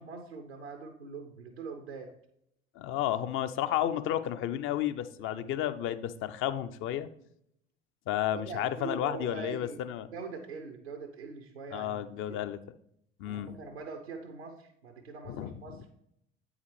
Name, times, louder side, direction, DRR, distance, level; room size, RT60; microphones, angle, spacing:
voice 1, 0.0-2.1 8.3-9.8 10.1-12.0 12.3-12.4 13.2-15.8, right 4 dB, 85° right, 3 dB, 0.7 m, -42 dB
voice 2, 2.8-7.1 8.1-10.1 11.7-12.6 13.2-13.5 15.2-15.8, left 11 dB, 40° left, 12 dB, 0.5 m, -32 dB
8.3 x 4.8 x 3.2 m, 0.72 s
figure-of-eight pair, 60°, 31 cm